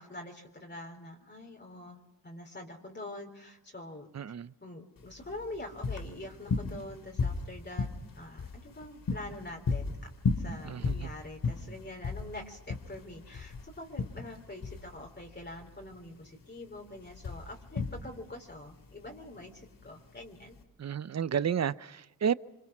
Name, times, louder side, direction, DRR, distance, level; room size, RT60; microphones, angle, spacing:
voice 1, 0.0-7.9 8.2-10.0 10.3-20.6, left 1 dB, 30° left, 3.8 m, -45 dB
voice 2, 4.1-4.5 10.6-11.1 20.8-22.3, right 8 dB, 50° right, 0.8 m, -31 dB
sound 1, 5.0-20.6, left 4 dB, 75° left, 3.0 m, -36 dB
26.5 x 25.5 x 6.1 m
wide cardioid pair, 95°, 33 cm